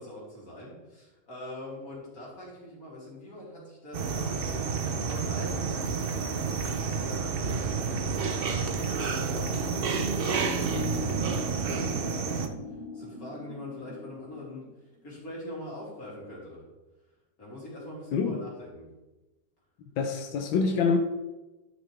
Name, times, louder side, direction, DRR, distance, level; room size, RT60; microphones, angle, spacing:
voice 1, 0.0-8.5 8.9-12.5 12.9-14.6 15.0-16.6 17.4-18.9, left 1 dB, 50° left, -5 dB, 3.3 m, -43 dB
sound 1, 3.9-12.5, right 5 dB, 70° right, 0.5 m, -30 dB
sound 2, 10.6-14.7, left 2 dB, 5° left, 2.6 m, -39 dB
voice 2, 20.0-21.0, left 5 dB, 90° left, 5 dB, 1.4 m, -26 dB
12.0 x 5.6 x 3.3 m, 1.1 s
omnidirectional pair, 2.0 m